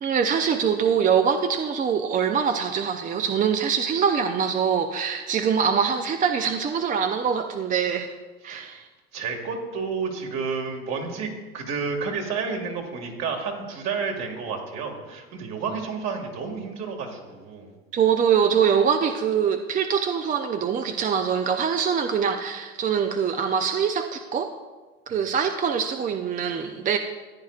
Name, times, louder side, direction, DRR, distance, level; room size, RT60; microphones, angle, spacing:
voice 1, 0.0-8.1 8.4-8.9 17.9-24.5 25.1-27.0, right 7 dB, 25° right, 7 dB, 0.5 m, -23 dB
voice 2, 9.1-17.7, right 5 dB, 55° right, 2 dB, 2.0 m, -31 dB
15.0 x 9.2 x 2.4 m, 1.3 s
supercardioid pair, 95°, 32 cm